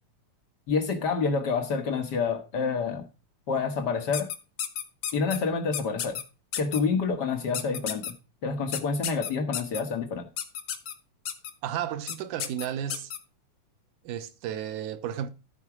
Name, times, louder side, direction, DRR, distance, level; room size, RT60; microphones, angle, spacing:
voice 1, 0.7-3.0 3.5-4.3 5.1-6.2 6.6-8.1 8.4-10.3, left 5 dB, 90° left, 0.9 m, -28 dB
sound 1, 4.1-5.4 5.7-6.2 6.5-6.8 7.5-8.1 8.7-9.8 10.4-10.9 11.2-11.5 12.1-12.2 12.4-13.2, left 9 dB, 65° left, 1.3 m, -32 dB
voice 2, 11.6-13.1 14.0-15.3, right 10 dB, 80° right, 2.2 m, -33 dB
13.0 x 4.7 x 6.0 m
omnidirectional pair, 3.6 m